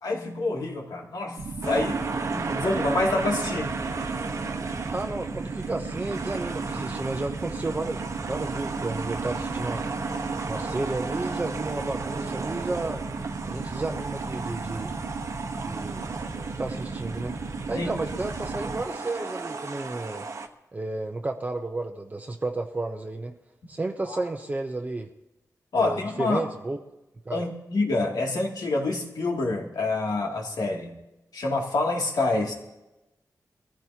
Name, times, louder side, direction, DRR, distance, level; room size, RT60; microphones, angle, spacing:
voice 1, 0.0-2.0 2.3-3.8 17.7-17.9 24.1-24.2 25.7-26.4 27.3-31.0 31.3-32.5, left 2 dB, 80° left, 0 dB, 2.6 m, -27 dB
sound 1, 1.4-18.8, right 4 dB, 75° right, 1.3 m, -35 dB
sound 2, 1.6-20.5, right 4 dB, 50° right, 1.0 m, -35 dB
voice 2, 4.9-9.9 10.5-13.0 13.4-14.9 15.6-16.1 16.6-17.4 17.7-20.3 20.7-23.3 23.7-25.1 25.7-26.8 27.3-27.4, right 2 dB, 25° right, 4 dB, 0.7 m, -32 dB
23.0 x 15.0 x 2.9 m, 0.97 s
wide cardioid pair, 150°, 7 cm